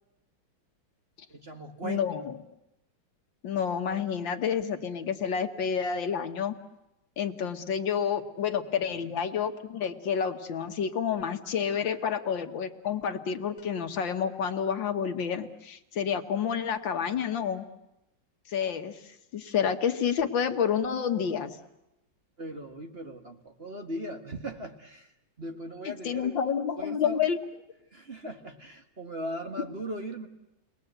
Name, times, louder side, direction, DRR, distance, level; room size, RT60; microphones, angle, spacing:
voice 1, 1.3-2.0 9.0-9.1 22.4-25.1 25.4-26.4 26.8-27.2 27.9-30.3, right 1 dB, 30° right, 3 dB, 1.7 m, -38 dB
voice 2, 1.8-2.4 3.4-6.5 7.2-17.7 18.5-19.0 19.3-21.6 26.0-27.4, left 7 dB, 70° left, 7 dB, 1.9 m, -29 dB
29.5 x 21.0 x 8.0 m, 0.93 s
omnidirectional pair, 2.2 m